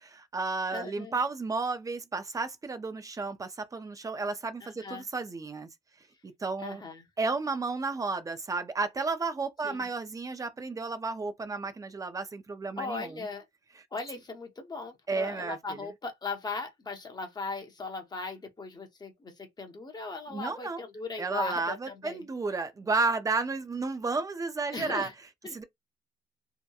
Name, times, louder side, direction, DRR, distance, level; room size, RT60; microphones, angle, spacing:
voice 1, 0.0-5.7 6.2-6.8 7.2-13.3 15.1-15.9 20.3-20.8 21.2-25.1 25.5-25.6, right 3 dB, 20° right, 0.5 m, -32 dB
voice 2, 0.7-1.2 4.6-5.0 6.6-7.1 9.6-9.9 12.8-13.5 13.9-22.2 24.7-25.1 25.4-25.6, left 3 dB, 20° left, 0.7 m, -38 dB
2.8 x 2.1 x 2.3 m
cardioid pair, 125°, 19 cm